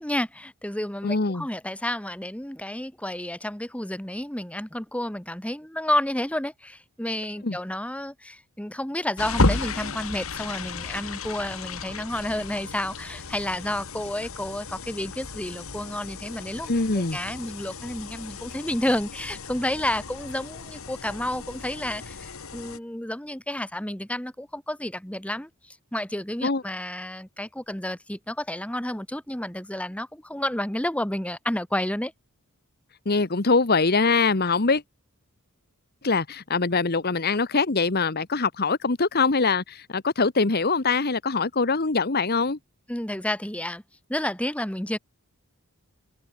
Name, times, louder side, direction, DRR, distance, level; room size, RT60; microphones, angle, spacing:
voice 1, 0.0-32.1 42.9-43.8 44.1-45.0, left 1 dB, 5° left, 1.6 m, -30 dB
voice 2, 1.0-1.4 7.4-7.6 16.7-17.2 26.4-26.6 33.0-34.8 36.0-42.6, left 4 dB, 45° left, 1.2 m, -23 dB
sound 1, 9.2-22.8, left 3 dB, 65° left, 1.7 m, -33 dB
head